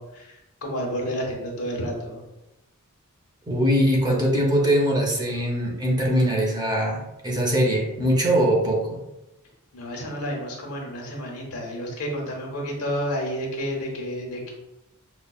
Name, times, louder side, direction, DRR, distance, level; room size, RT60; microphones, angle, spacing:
voice 1, 0.0-2.2 9.7-14.5, equal, 80° left, -1 dB, 1.0 m, -30 dB
voice 2, 3.5-9.0, equal, 20° right, -1 dB, 0.7 m, -22 dB
5.1 x 2.3 x 2.3 m, 0.95 s
head